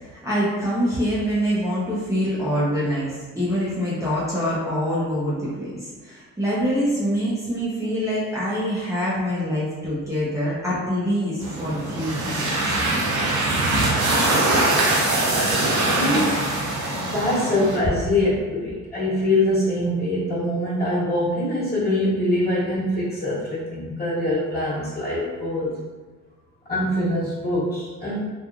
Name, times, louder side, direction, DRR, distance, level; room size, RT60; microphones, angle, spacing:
voice 1, 0.0-12.7, equal, 10° right, -10 dB, 0.7 m, -25 dB
sound 1, 11.4-17.8, right 2 dB, 75° right, 0.8 m, -22 dB
voice 2, 15.9-16.4 17.0-25.7 26.7-28.3, left 1 dB, 30° left, -9 dB, 1.5 m, -24 dB
2.9 x 2.4 x 2.4 m, 1.4 s
cardioid pair, 90°, 30 cm